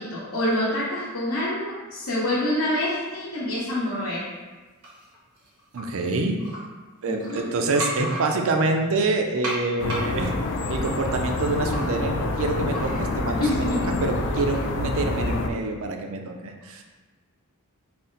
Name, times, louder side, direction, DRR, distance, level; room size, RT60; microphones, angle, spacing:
voice 1, 0.0-4.2 7.1-7.4 13.4-13.8, left 1 dB, 75° left, -10 dB, 1.0 m, -26 dB
sound 1, 4.8-5.8 6.4-6.6 7.1-8.7 9.4-13.3 13.7-14.7, equal, 85° right, 0.9 m, -36 dB
voice 2, 5.7-6.4 7.0-10.3 10.7-13.7 14.0-16.8, right 3 dB, 65° right, 4 dB, 0.4 m, -26 dB
Park mono, 9.8-15.5, left 2 dB, 55° left, 0.4 m, -27 dB
4.1 x 2.1 x 3.8 m, 1.3 s
head